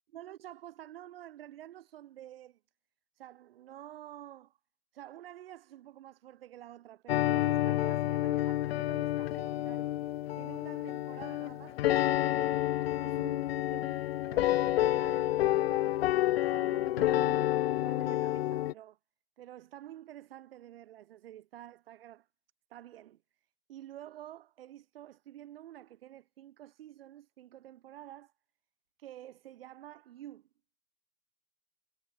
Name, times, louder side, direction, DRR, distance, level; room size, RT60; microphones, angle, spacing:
voice 1, 0.1-2.6 3.1-4.6 4.9-12.6 13.0-16.0 16.5-19.0 19.4-22.3 22.7-23.2 23.7-28.3 29.0-30.5, right 13 dB, 65° right, 6.1 m, -50 dB
sound 1, 7.1-18.7, left 14 dB, 75° left, 0.7 m, -29 dB
supercardioid pair, 175°, 31 cm